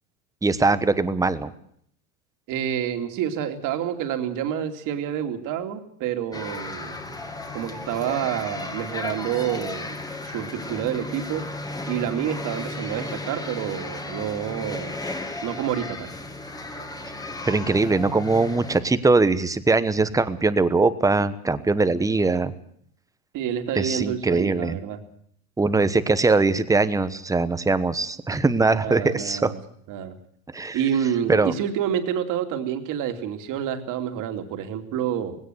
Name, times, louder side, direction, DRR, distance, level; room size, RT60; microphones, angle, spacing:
voice 1, 0.4-1.5 17.4-22.5 23.7-24.8 25.6-29.5 30.5-30.8 31.3-31.5, right 3 dB, 10° right, 13 dB, 1.1 m, -21 dB
voice 2, 2.5-6.9 7.5-10.0 10.2-11.4 11.9-14.9 15.4-16.1 23.3-25.0 28.8-29.6 29.9-30.2 30.7-35.4, right 9 dB, 45° right, 6 dB, 2.8 m, -28 dB
sound 1, 6.3-18.8, left 2 dB, 10° left, 2.1 m, -34 dB
19.0 x 17.0 x 8.0 m, 0.66 s
supercardioid pair, 125°, 43 cm